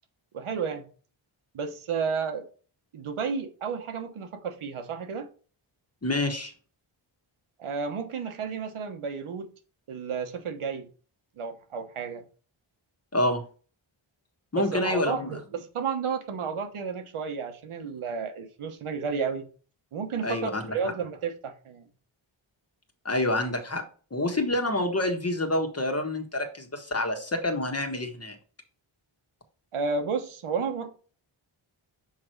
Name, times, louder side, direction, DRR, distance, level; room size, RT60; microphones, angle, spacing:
voice 1, 0.3-0.9 1.5-2.5 2.9-5.3 7.6-9.5 9.9-10.9 11.4-12.2 14.5-19.5 19.9-21.9 29.7-30.9, right 5 dB, 85° right, 1.1 m, -32 dB
voice 2, 6.0-6.5 13.1-13.4 14.5-15.3 20.2-20.8 23.0-23.8 24.1-28.3, left 1 dB, 30° left, 1.5 m, -27 dB
5.9 x 4.6 x 4.5 m
cardioid pair, 75°, 49 cm